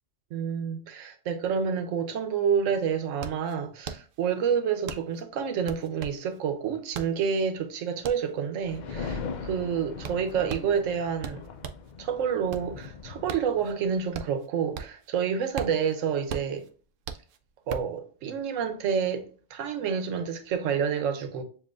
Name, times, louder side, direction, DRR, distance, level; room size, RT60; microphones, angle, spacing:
voice 1, 0.3-11.4 12.0-16.6 17.7-21.4, right 7 dB, 80° right, 1.1 m, -29 dB
sound 1, 2.6-11.9 12.3-15.1 15.4-18.0, right 6 dB, 60° right, 0.5 m, -39 dB
sound 2, 8.6-14.1, left 5 dB, 70° left, 0.4 m, -40 dB
7.0 x 2.6 x 2.5 m
omnidirectional pair, 1.3 m